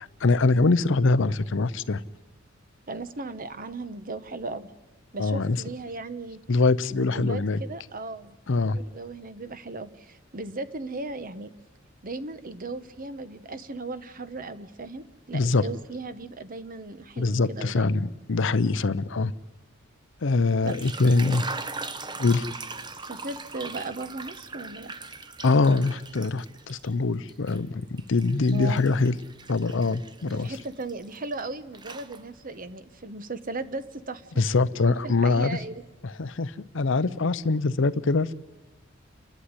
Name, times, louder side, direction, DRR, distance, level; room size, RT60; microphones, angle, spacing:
voice 1, 0.2-2.0 5.2-5.6 6.5-7.6 8.5-8.8 15.3-15.7 17.2-19.3 20.2-21.4 22.2-22.5 25.4-29.2 29.5-30.5 34.4-35.6 36.0-38.3, left 3 dB, 65° left, 16 dB, 0.7 m, -23 dB
voice 2, 2.9-4.7 5.1-6.4 6.9-11.5 12.0-17.9 20.6-20.8 22.9-24.9 28.5-29.0 30.2-34.4 34.7-35.8, right 3 dB, 45° right, 12 dB, 1.1 m, -37 dB
sound 1, 20.5-26.9 27.3-31.4 31.7-32.6, right 3 dB, 20° right, 1.0 m, -40 dB
29.5 x 11.5 x 9.7 m, 1.2 s
head